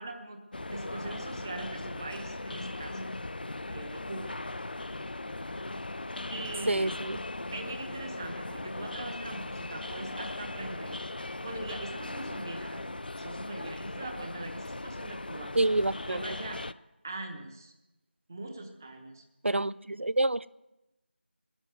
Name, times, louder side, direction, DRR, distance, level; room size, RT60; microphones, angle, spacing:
voice 1, 0.0-3.0 3.7-4.4 6.3-6.9 7.5-11.0 11.4-15.5 16.1-16.7 17.0-17.7 18.3-19.2, right 2 dB, 15° right, 4 dB, 0.9 m, -41 dB
sound 1, 0.5-16.7, left 2 dB, 55° left, 0.4 m, -39 dB
voice 2, 6.7-7.2 15.6-16.2 19.4-20.5, right 2 dB, 90° right, 18 dB, 0.5 m, -27 dB
20.0 x 7.2 x 8.0 m, 0.98 s
figure-of-eight pair, 170°, 6 cm